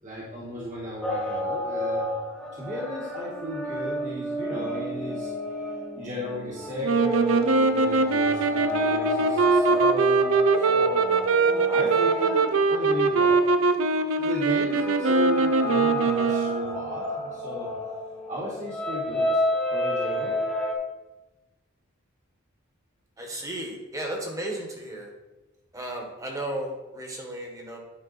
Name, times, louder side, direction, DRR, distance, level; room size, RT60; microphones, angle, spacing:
voice 1, 0.0-2.1 2.5-5.3 5.9-11.3 11.6-13.5 14.1-17.7 18.3-19.4 19.7-20.4, equal, 35° right, -5 dB, 1.6 m, -35 dB
sound 1, 1.0-13.5 14.2-20.7, left 1 dB, 5° left, 1.3 m, -31 dB
sound 2, 6.8-16.9, right 3 dB, 80° right, 0.6 m, -22 dB
voice 2, 23.2-25.1 25.7-27.8, right 1 dB, 15° right, 1 dB, 1.4 m, -34 dB
9.8 x 5.3 x 4.1 m, 1.1 s
head